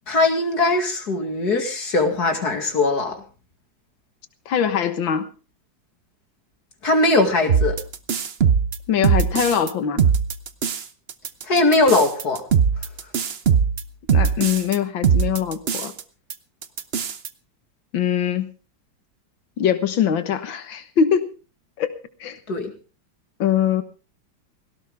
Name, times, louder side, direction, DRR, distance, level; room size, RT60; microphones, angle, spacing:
voice 1, 0.1-3.2 6.8-7.8 11.4-12.4 22.5-22.7, left 2 dB, 55° left, 5 dB, 2.8 m, -20 dB
voice 2, 4.5-5.3 8.9-10.0 14.1-15.9 17.9-18.5 19.6-21.3 21.8-21.9 22.2-22.4 23.4-23.8, left 8 dB, 85° left, 11 dB, 2.1 m, -22 dB
sound 1, 7.5-9.7 10.0-10.8 11.1-14.8 15.0-16.0 16.3-16.4 16.6-17.3, right 7 dB, 50° right, 0.8 m, -20 dB
18.0 x 17.0 x 3.5 m, 0.34 s
omnidirectional pair, 2.0 m